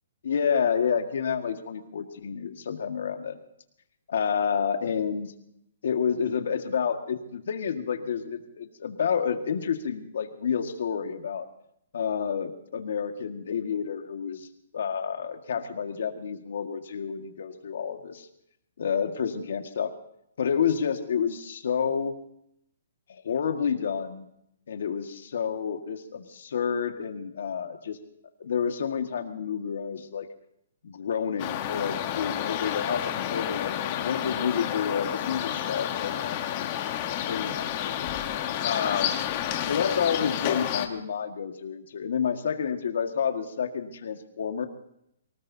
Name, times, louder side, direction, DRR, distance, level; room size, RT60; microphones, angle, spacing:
voice 1, 0.2-3.4 4.1-5.3 5.8-11.5 11.9-14.5 14.7-18.3 18.8-19.9 20.4-22.1 23.1-24.3 24.7-28.0 28.4-30.3 30.8-36.6 37.2-37.6 38.6-39.3 39.7-44.7, left 7 dB, 60° left, 6 dB, 1.7 m, -29 dB
sound 1, 31.4-40.9, left 11 dB, 25° left, 1.2 m, -30 dB
24.0 x 18.5 x 2.8 m, 0.77 s
hypercardioid pair, 170°, 0 cm